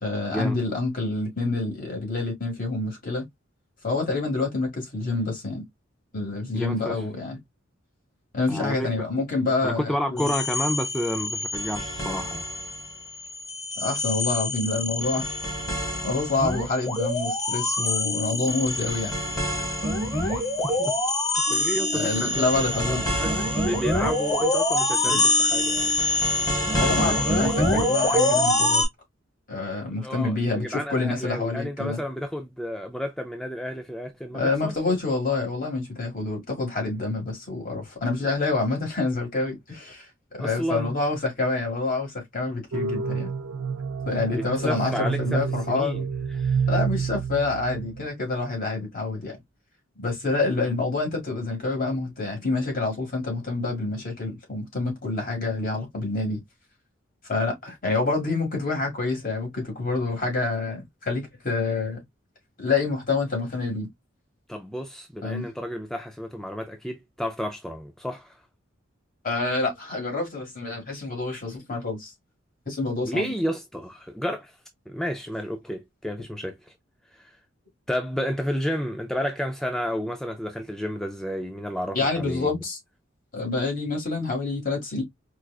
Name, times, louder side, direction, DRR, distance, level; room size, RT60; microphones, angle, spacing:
voice 1, 0.0-3.2 3.8-5.6 6.1-7.4 8.3-10.3 13.8-15.3 16.0-19.1 21.9-23.0 25.0-25.2 26.8-28.8 29.5-32.0 34.3-40.1 40.3-43.3 44.1-46.0 46.7-49.4 50.0-56.4 57.3-62.0 62.6-63.9 65.2-65.5 69.2-72.1 72.7-73.3 81.9-82.8 83.3-85.0, left 3 dB, 45° left, 1.9 m, -27 dB
voice 2, 6.5-7.0 8.5-8.9 9.6-12.5 20.1-20.9 21.5-25.9 29.5-34.7 40.4-40.9 44.3-45.4 45.7-46.7 64.5-68.4 73.0-74.6 74.9-76.6 77.1-77.4 77.9-82.6, equal, ahead, 0.4 m, -31 dB
sound 1, 10.2-12.9 13.2-28.8, left 1 dB, 20° left, 1.4 m, -25 dB
sound 2, 42.7-48.1, right 6 dB, 80° right, 0.4 m, -28 dB
4.5 x 2.4 x 2.3 m
head